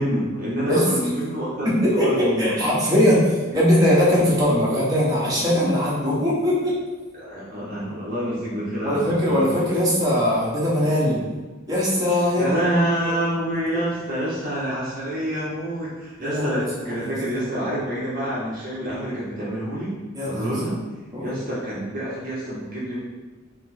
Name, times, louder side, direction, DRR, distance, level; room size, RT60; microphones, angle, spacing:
voice 1, 0.0-2.6 7.2-9.6 10.9-11.2 12.4-20.0 20.2-20.8 21.2-23.0, right 1 dB, 45° right, -7 dB, 0.8 m, -27 dB
voice 2, 1.6-6.8 8.8-11.2 11.7-12.8 13.0-13.1 16.2-16.6 17.0-17.1 20.1-20.5 21.1-21.3, equal, 20° right, -7 dB, 1.0 m, -20 dB
4.3 x 2.0 x 4.2 m, 1.2 s
head